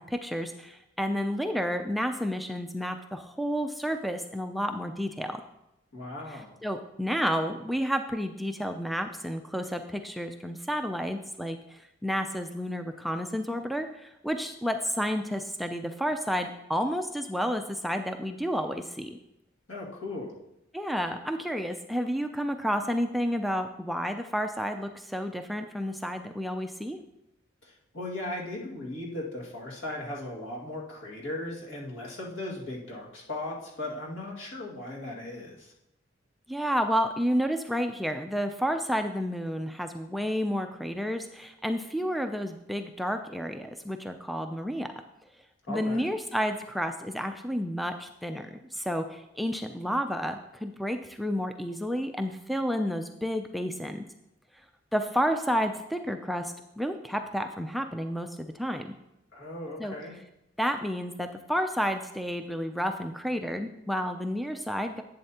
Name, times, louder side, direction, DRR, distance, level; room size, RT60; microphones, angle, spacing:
voice 1, 0.0-5.4 6.3-19.2 20.7-27.0 36.5-44.9 45.7-54.0 54.9-58.9 59.8-59.9 60.6-65.0, equal, ahead, 5 dB, 0.3 m, -31 dB
voice 2, 5.9-6.5 19.7-20.3 27.6-35.7 45.7-46.1 59.3-60.1, left 1 dB, 75° left, -2 dB, 2.0 m, -37 dB
11.0 x 7.9 x 2.8 m, 0.87 s
head